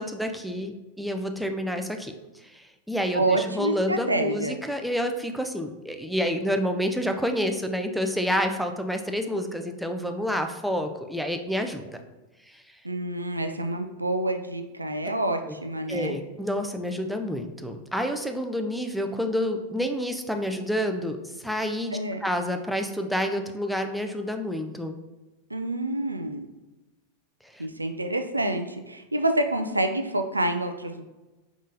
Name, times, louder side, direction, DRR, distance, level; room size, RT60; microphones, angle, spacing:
voice 1, 0.0-2.1 2.4-12.0 12.5-12.6 15.5-15.6 15.9-21.2 21.4-25.0 27.5-27.7, equal, ahead, 5 dB, 0.4 m, -29 dB
voice 2, 3.1-4.6 12.8-16.2 21.9-22.2 25.5-26.5 27.6-31.0, right 1 dB, 85° right, 6 dB, 0.3 m, -27 dB
4.9 x 3.6 x 2.6 m, 1.1 s
figure-of-eight pair, 90°, 0 cm